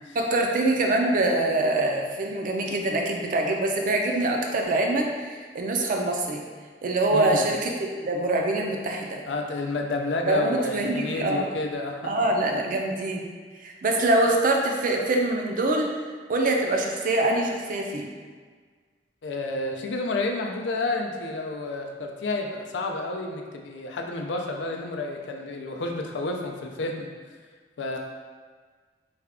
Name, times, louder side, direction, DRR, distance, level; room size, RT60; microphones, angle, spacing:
voice 1, 0.2-6.4 6.8-9.2 10.3-11.5 12.0-13.2 13.6-16.0 16.3-18.1, right 2 dB, 50° right, 1 dB, 0.4 m, -24 dB
voice 2, 7.1-7.4 9.2-12.3 19.2-27.1 27.8-28.0, left 2 dB, 85° left, 2 dB, 0.4 m, -30 dB
3.4 x 2.3 x 3.5 m, 1.5 s
head